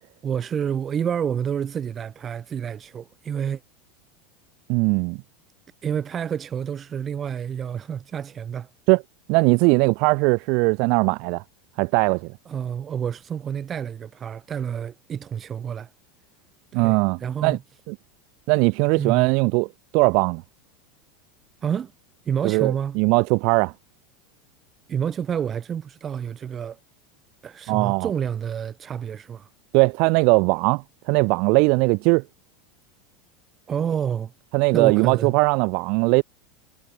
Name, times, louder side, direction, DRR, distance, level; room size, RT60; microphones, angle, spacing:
voice 1, 0.2-3.6 5.8-8.7 12.5-15.9 16.7-17.6 18.9-19.3 21.6-21.9 22.2-23.0 24.9-26.8 27.4-29.5 33.7-34.3 34.7-35.4, right 8 dB, 30° right, 6.3 m, -29 dB
voice 2, 4.7-5.2 8.9-9.0 9.3-11.4 11.8-12.3 16.7-17.6 17.9-18.0 18.5-20.4 22.4-23.7 27.7-28.1 29.7-32.2 34.5-36.2, right 32 dB, 55° right, 1.8 m, -20 dB
figure-of-eight pair, 85°, 0 cm